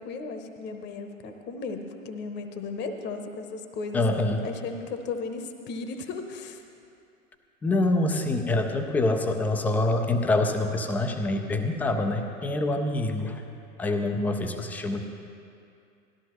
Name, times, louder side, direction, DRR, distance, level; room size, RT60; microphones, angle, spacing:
voice 1, 0.0-6.6 11.8-12.2, left 4 dB, 25° left, 6 dB, 0.9 m, -36 dB
voice 2, 3.9-4.4 7.6-13.4 13.8-15.0, left 2 dB, 5° left, 5 dB, 0.3 m, -26 dB
18.0 x 13.5 x 3.0 m, 2.5 s
figure-of-eight pair, 95°, 41 cm